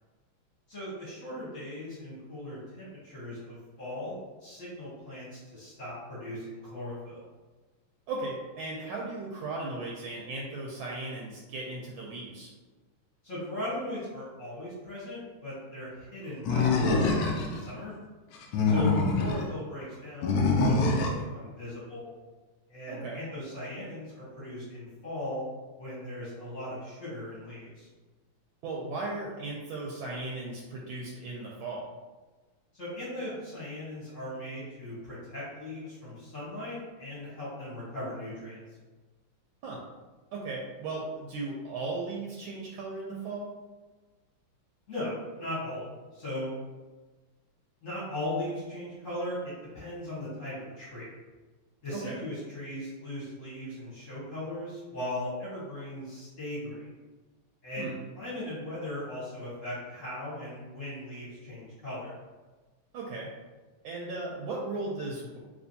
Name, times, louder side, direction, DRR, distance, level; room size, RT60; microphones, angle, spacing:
voice 1, 0.7-7.2 13.2-17.9 18.6-21.1 21.3-22.1 22.7-25.4 25.8-27.9 32.7-38.6 44.9-46.5 47.8-51.1 51.8-56.9 57.6-62.1, left 1 dB, 45° left, -9 dB, 1.2 m, -38 dB
voice 2, 8.1-12.5 18.7-18.9 22.9-23.2 28.6-31.8 39.6-39.8 40.3-43.5 51.9-52.2 57.8-58.0 62.9-63.3 63.8-65.4, right 3 dB, 75° right, -3 dB, 1.3 m, -36 dB
Animal, 16.5-17.6 18.3-19.4 20.2-21.2, left 3 dB, 85° left, 0.9 m, -25 dB
3.3 x 3.2 x 2.6 m, 1.3 s
omnidirectional pair, 2.4 m